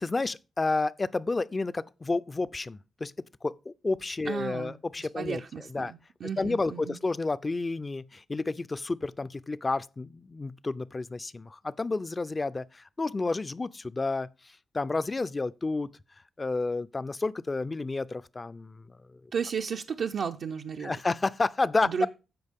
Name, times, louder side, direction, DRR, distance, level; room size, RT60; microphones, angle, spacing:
voice 1, 0.0-3.1 3.4-5.4 5.7-5.9 6.4-14.3 14.7-15.9 16.4-18.8 20.8-22.1, left 3 dB, 30° left, 0.4 m, -30 dB
voice 2, 4.3-7.0 19.3-20.9 21.8-22.1, right 6 dB, 75° right, 0.5 m, -34 dB
14.5 x 5.2 x 3.6 m
cardioid pair, 75°, 0 cm